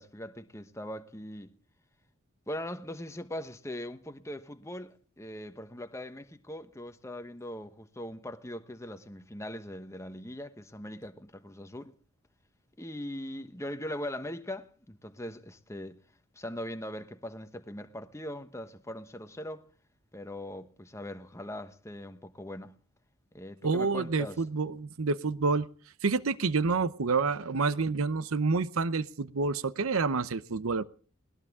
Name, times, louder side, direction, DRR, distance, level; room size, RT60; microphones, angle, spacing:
voice 1, 0.0-1.5 2.5-11.9 12.8-16.0 16.3-19.7 20.1-22.8 23.3-24.4, left 1 dB, 15° left, 1.1 m, -40 dB
voice 2, 23.6-25.7 26.0-30.8, right 4 dB, 80° right, 0.7 m, -28 dB
20.5 x 19.5 x 3.6 m
head